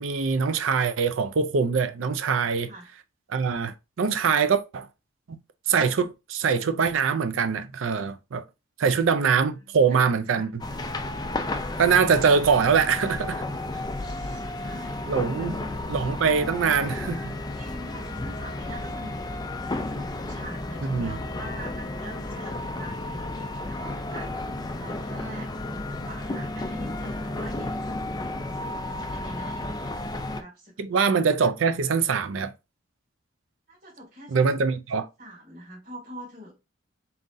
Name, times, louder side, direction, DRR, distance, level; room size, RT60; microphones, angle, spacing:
voice 1, 0.0-2.7 3.3-4.9 5.7-8.4 8.8-10.5 11.8-13.4 15.1-15.6 15.9-17.3 20.8-21.2 30.8-32.5 34.3-35.1, right 5 dB, 85° right, 0.5 m, -23 dB
voice 2, 2.3-2.9 9.1-10.5 13.9-15.8 17.5-19.2 19.6-24.3 24.8-25.5 25.9-27.8 28.2-29.9 30.2-31.1 33.7-34.5 35.2-36.6, equal, 55° right, 2.5 m, -44 dB
sound 1, 10.6-30.4, left 2 dB, 20° left, 0.4 m, -33 dB
4.1 x 3.7 x 2.6 m
head